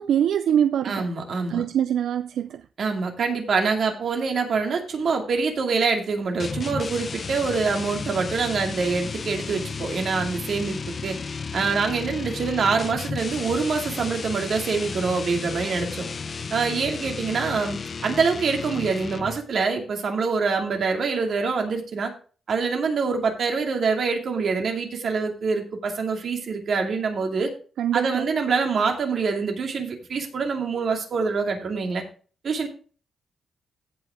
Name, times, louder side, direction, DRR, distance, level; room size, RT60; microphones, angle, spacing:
voice 1, 0.0-1.1 1.5-2.6 27.8-28.3, right 9 dB, 90° right, 0.4 m, -23 dB
voice 2, 0.8-1.6 2.8-11.2 11.5-16.1 16.5-22.1 22.5-27.5 27.9-32.0 32.4-32.7, right 4 dB, 60° right, 2.4 m, -25 dB
sound 1, 6.4-19.5, left 5 dB, 45° left, 0.7 m, -33 dB
16.0 x 5.7 x 3.6 m
cardioid pair, 105°, 0 cm